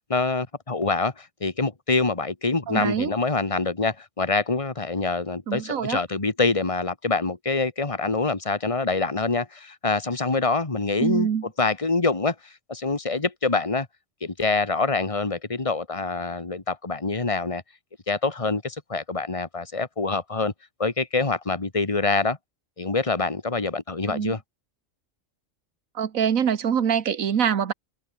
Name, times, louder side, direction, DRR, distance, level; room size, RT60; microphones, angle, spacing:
voice 1, 0.0-11.3 11.6-13.9 14.2-17.6 18.1-20.5 20.8-22.4 22.8-24.4, left 3 dB, 25° left, 2.1 m, -25 dB
voice 2, 2.7-3.1 5.5-6.0 11.0-11.5 24.1-24.4 25.9-27.7, right 8 dB, 85° right, 1.6 m, -24 dB
omnidirectional pair, 1.4 m